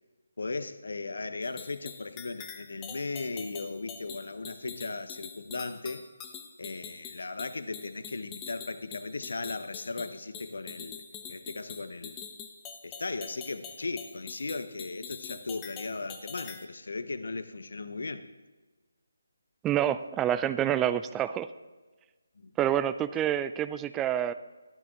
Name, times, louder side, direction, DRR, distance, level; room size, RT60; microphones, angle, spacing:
voice 1, 0.4-6.1 6.6-11.0 11.3-12.2 12.8-18.3 22.4-22.5, left 3 dB, 65° left, 11 dB, 0.8 m, -37 dB
sound 1, 1.4-16.7, left 7 dB, 15° left, 0.7 m, -44 dB
voice 2, 19.6-21.5 22.6-24.3, right 11 dB, 10° right, 13 dB, 0.3 m, -27 dB
12.0 x 12.0 x 3.5 m, 1.3 s
figure-of-eight pair, 150°, 0 cm